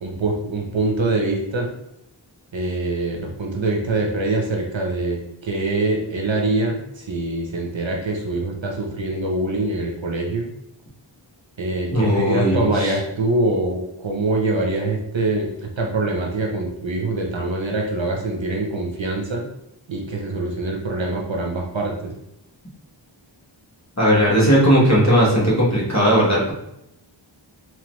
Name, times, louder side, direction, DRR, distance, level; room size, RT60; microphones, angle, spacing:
voice 1, 0.0-1.7 2.5-10.5 11.6-19.4 19.9-22.1, right 2 dB, 70° right, 0 dB, 0.8 m, -24 dB
voice 2, 11.9-12.9 24.0-26.5, equal, 35° left, -5 dB, 1.3 m, -17 dB
3.8 x 3.1 x 3.1 m, 0.81 s
wide cardioid pair, 40°, 47 cm